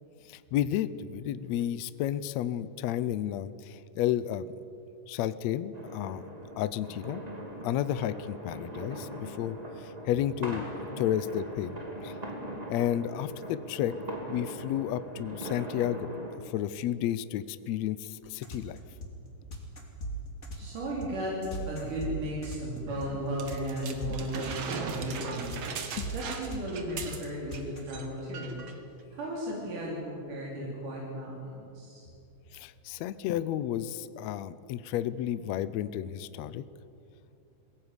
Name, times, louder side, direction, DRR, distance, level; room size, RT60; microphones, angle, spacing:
voice 1, 0.3-4.5 5.1-6.2 6.6-7.2 7.6-10.6 11.0-12.1 12.7-14.0 14.3-16.1 16.4-18.8 26.0-26.1 32.5-36.6, left 11 dB, 75° left, 15 dB, 1.7 m, -32 dB
sound 1, 5.7-16.4, right 1 dB, 15° right, 2.5 m, -41 dB
sound 2, 18.2-27.8, right 2 dB, 25° left, 2.9 m, -38 dB
voice 2, 20.5-21.4 21.6-25.5 26.1-28.6 29.1-32.1, equal, 85° right, -4 dB, 5.1 m, -35 dB
sound 3, 23.4-27.6 27.9-28.1 28.3-28.8 29.5-29.6, right 5 dB, 50° right, 2.3 m, -38 dB
21.5 x 17.5 x 9.8 m, 2.7 s
omnidirectional pair, 3.6 m